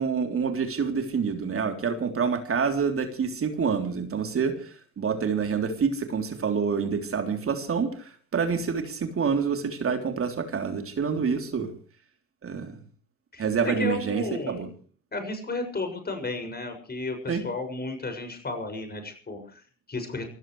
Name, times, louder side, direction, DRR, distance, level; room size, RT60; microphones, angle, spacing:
voice 1, 0.0-11.7 12.4-12.8 13.4-14.7 17.3-17.4, right 6 dB, 35° right, 5 dB, 3.4 m, -27 dB
voice 2, 13.3-14.6 15.1-20.3, left 3 dB, 25° left, 7 dB, 6.6 m, -33 dB
28.5 x 15.0 x 3.3 m, 0.42 s
figure-of-eight pair, 55°, 38 cm